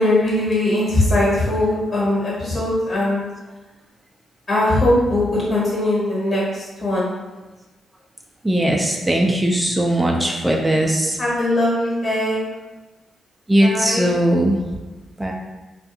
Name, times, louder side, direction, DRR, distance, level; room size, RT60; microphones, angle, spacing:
voice 1, 0.0-3.2 4.5-7.1 10.1-10.2 10.5-10.7 11.2-12.4 13.6-14.0, left 1 dB, 45° left, -6 dB, 1.3 m, -20 dB
voice 2, 8.4-11.2 13.5-14.6 15.2-15.3, right 1 dB, 10° right, -1 dB, 0.4 m, -19 dB
2.4 x 2.3 x 2.7 m, 1.1 s
supercardioid pair, 60°, 0 cm